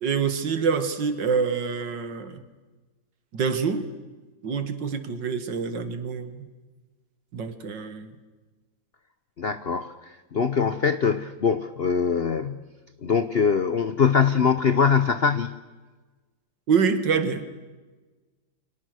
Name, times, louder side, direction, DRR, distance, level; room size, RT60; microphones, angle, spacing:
voice 1, 0.0-2.4 3.3-3.9 4.4-6.5 7.3-8.2 16.7-17.4, right 6 dB, 65° right, 10 dB, 2.4 m, -26 dB
voice 2, 9.4-9.9 10.3-12.6 13.0-15.6, left 6 dB, 50° left, 11 dB, 0.7 m, -22 dB
29.5 x 24.5 x 6.4 m, 1.3 s
omnidirectional pair, 2.1 m